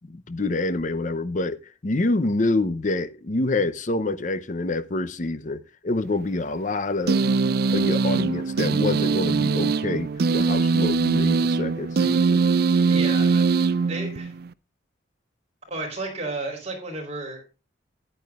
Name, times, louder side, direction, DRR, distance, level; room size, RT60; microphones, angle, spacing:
voice 1, 0.1-7.2 7.7-12.5, left 2 dB, 40° left, 0.6 m, -27 dB
sound 1, 7.1-14.5, right 4 dB, 50° right, 0.4 m, -22 dB
voice 2, 12.9-14.3 15.7-17.4, right 2 dB, 35° right, 3.8 m, -33 dB
13.5 x 10.0 x 2.4 m
head